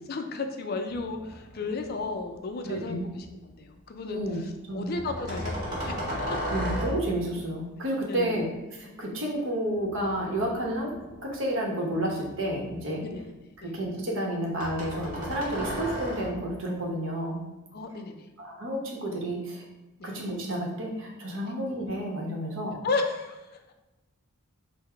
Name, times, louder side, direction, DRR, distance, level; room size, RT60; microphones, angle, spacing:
voice 1, 0.1-3.3 3.6-6.1 8.1-8.5 13.0-13.3 13.6-13.8 17.7-18.3 20.0-20.1 21.4-21.5 22.8-23.7, left 3 dB, 45° left, 5 dB, 0.3 m, -34 dB
sound 1, 0.9-2.2 2.6-3.3 4.9-7.3 9.8-11.3 11.9-13.1 14.6-16.5, equal, 40° right, 1.4 m, -35 dB
voice 2, 2.6-3.1 4.1-4.4 4.7-4.9 6.5-8.4 8.7-10.9 11.2-13.0 13.6-17.4 18.4-19.6 20.0-22.8, right 1 dB, 60° right, -1 dB, 0.9 m, -31 dB
3.8 x 2.1 x 4.3 m, 1.1 s
head